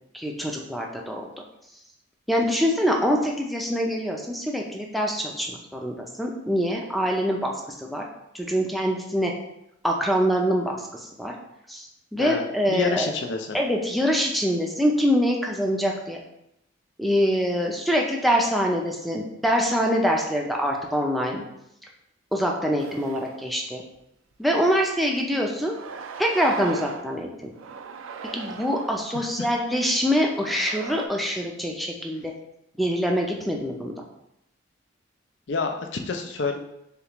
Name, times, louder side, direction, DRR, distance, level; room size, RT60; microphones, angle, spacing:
voice 1, 0.1-1.3 2.3-7.5 7.8-8.0 8.3-9.3 9.8-11.3 11.7-11.9 12.1-13.1 13.5-16.2 17.0-21.4 22.3-23.8 24.4-25.7 26.2-27.5 28.3-32.3 32.8-33.9, equal, ahead, 0 dB, 0.5 m, -24 dB
voice 2, 12.2-13.6 29.1-29.5 35.5-36.6, left 4 dB, 60° left, 4 dB, 0.5 m, -28 dB
sound 1, 22.8-23.5 23.9-24.0 25.1-25.2 25.7-27.1 27.5-29.0 29.8-31.1, right 5 dB, 80° right, 0.4 m, -38 dB
6.6 x 2.4 x 3.0 m, 0.83 s
head